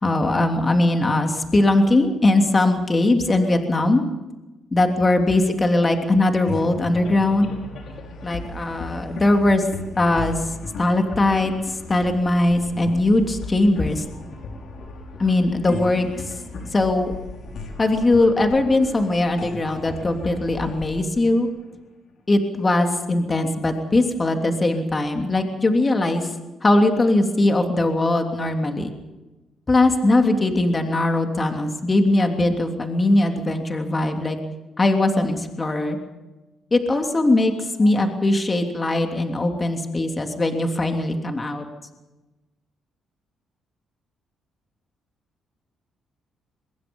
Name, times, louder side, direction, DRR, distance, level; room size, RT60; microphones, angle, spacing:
voice 1, 0.0-4.0 4.7-7.5 8.2-9.6 10.0-10.4 10.8-11.5 11.9-14.0 15.2-16.1 16.7-17.1 17.8-21.5 22.3-26.3 26.6-28.9 29.7-34.4 34.8-36.0 36.7-41.6, left 2 dB, 25° left, 4 dB, 3.0 m, -20 dB
sound 1, 6.5-22.1, left 3 dB, 60° left, 5.2 m, -36 dB
24.0 x 21.5 x 5.5 m, 1.1 s
cardioid pair, 110°, 0 cm